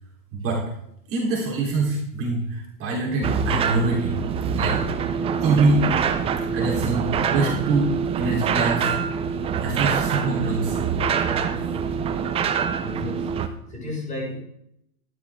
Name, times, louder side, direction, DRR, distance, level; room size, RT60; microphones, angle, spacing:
voice 1, 0.3-0.6 1.1-4.2 4.6-4.8 5.4-5.9 6.5-8.9 9.6-10.8, right 3 dB, 30° right, -2 dB, 3.7 m, -24 dB
sound 1, 3.2-13.5, right 7 dB, 15° right, 0.6 m, -25 dB
voice 2, 12.8-13.3 13.7-14.4, left 2 dB, 15° left, -1 dB, 5.7 m, -32 dB
13.0 x 12.0 x 3.6 m, 0.75 s
hypercardioid pair, 125°, 45 cm